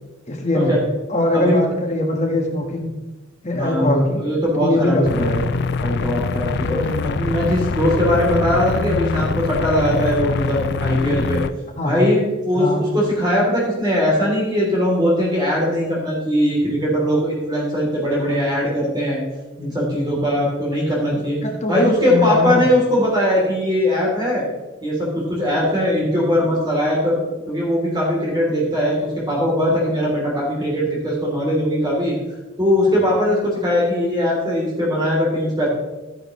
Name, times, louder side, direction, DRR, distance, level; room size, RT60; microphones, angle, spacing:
voice 1, 0.3-0.7 1.1-2.9 3.4-4.2 4.5-5.4 6.7-7.1 11.8-12.1 12.5-12.8 21.4-22.7, left 1 dB, 30° left, 1 dB, 1.5 m, -21 dB
voice 2, 3.5-5.4 5.8-6.8 7.0-11.4 11.8-19.2 19.6-21.4 21.7-24.4 24.8-27.2 27.5-32.1 32.6-35.7, equal, 20° right, -5 dB, 3.3 m, -20 dB
sound 1, 5.0-11.5, left 4 dB, 50° left, 0.4 m, -24 dB
14.0 x 10.0 x 3.2 m, 1.1 s
head